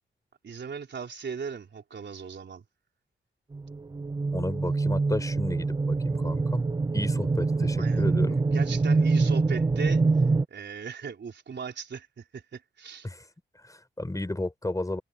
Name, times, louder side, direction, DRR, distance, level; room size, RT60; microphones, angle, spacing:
voice 1, 0.4-2.6 7.8-10.0 10.5-13.1, right 6 dB, 60° right, 4.3 m, -38 dB
sound 1, 3.5-10.4, right 3 dB, 20° right, 0.5 m, -25 dB
voice 2, 4.3-6.6 6.9-8.4 13.0-13.3 13.5-15.0, left 1 dB, 15° left, 4.9 m, -33 dB
cardioid pair, 60°, 20 cm